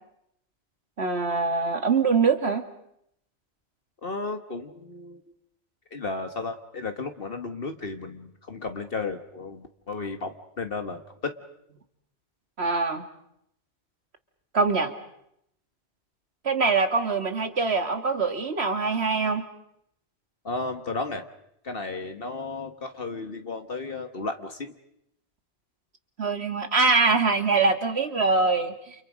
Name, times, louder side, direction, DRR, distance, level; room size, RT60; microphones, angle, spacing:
voice 1, 1.0-2.6 12.6-13.0 14.5-14.9 16.4-19.4 26.2-28.9, right 4 dB, 75° right, 7 dB, 2.3 m, -23 dB
voice 2, 4.0-5.2 5.9-11.3 20.4-21.2 21.6-24.7, left 3 dB, 60° left, 6 dB, 1.6 m, -34 dB
29.5 x 29.5 x 5.2 m, 0.76 s
omnidirectional pair, 1.1 m